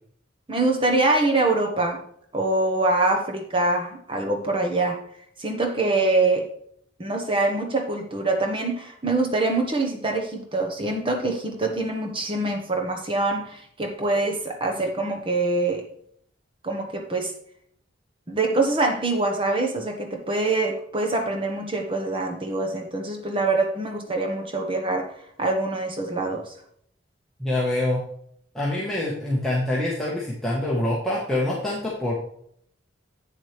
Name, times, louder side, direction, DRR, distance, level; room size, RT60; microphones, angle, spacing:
voice 1, 0.5-2.0 2.3-5.0 5.4-6.5 7.0-15.8 16.6-17.3 18.3-25.1 25.4-26.5, right 2 dB, 25° right, 3 dB, 1.3 m, -24 dB
voice 2, 27.4-28.0 28.5-32.1, left 1 dB, 5° left, -6 dB, 1.3 m, -25 dB
8.7 x 7.3 x 3.4 m, 0.66 s
head